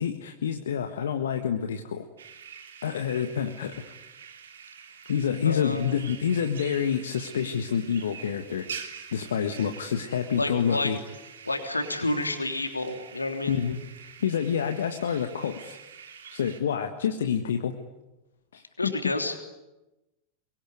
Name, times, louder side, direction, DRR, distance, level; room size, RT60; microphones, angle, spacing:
voice 1, 0.0-2.1 2.8-3.7 5.1-8.8 9.1-11.0 13.5-13.8 14.2-15.8 16.3-17.7 18.5-18.9, left 8 dB, 65° left, 6 dB, 1.6 m, -28 dB
sound 1, 2.2-16.6, right 7 dB, 65° right, 3.1 m, -45 dB
voice 2, 5.4-5.9 10.4-10.9 11.4-13.6 18.8-19.5, left 2 dB, 80° left, 5 dB, 3.4 m, -29 dB
23.5 x 23.0 x 9.6 m, 1.0 s
figure-of-eight pair, 90°, 0 cm